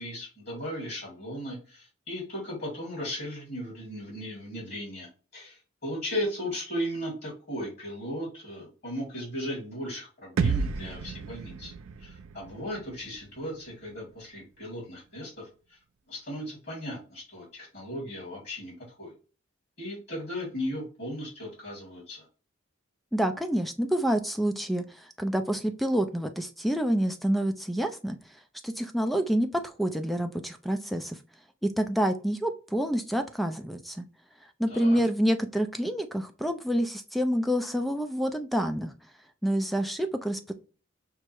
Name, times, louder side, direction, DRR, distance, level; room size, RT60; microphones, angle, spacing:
voice 1, 0.0-11.7 12.0-15.8 16.1-19.1 19.8-22.2 34.7-35.0, equal, 50° left, -4 dB, 2.4 m, -36 dB
sound 1, 10.4-14.3, right 5 dB, 85° right, 0.4 m, -33 dB
voice 2, 23.1-28.2 28.6-31.2 31.6-34.0 34.6-38.9 39.4-40.5, equal, ahead, 6 dB, 0.3 m, -28 dB
5.5 x 2.0 x 4.5 m, 0.35 s
head